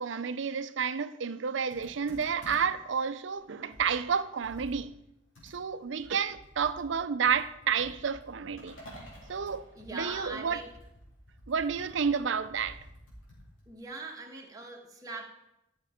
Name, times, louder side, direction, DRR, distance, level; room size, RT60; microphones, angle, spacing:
voice 1, 0.0-4.9 5.4-8.8 9.3-9.7 9.9-10.6 11.5-12.8, right 6 dB, 65° right, 0.5 m, -30 dB
Computer keyboard, 1.7-2.9 3.3-3.4 3.7-7.0 7.2-13.7, equal, 65° left, 3.9 m, -52 dB
sound 1, 8.6-10.9, right 1 dB, 85° left, 3.5 m, -51 dB
voice 2, 9.7-10.7 13.7-15.3, right 3 dB, 20° right, 1.5 m, -41 dB
11.5 x 6.6 x 5.0 m
head